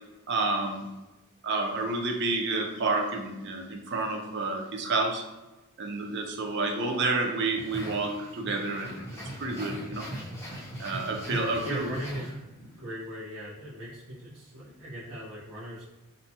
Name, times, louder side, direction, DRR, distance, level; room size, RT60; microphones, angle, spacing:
voice 1, 0.3-0.9 1.4-5.2 5.8-10.1 10.8-11.9, right 3 dB, 50° right, 3 dB, 0.4 m, -30 dB
sound 1, 7.6-12.8, equal, 10° left, 0.5 m, -40 dB
voice 2, 11.3-12.3 12.5-15.8, equal, 85° right, -10 dB, 0.8 m, -39 dB
2.6 x 2.2 x 2.8 m, 1.1 s
head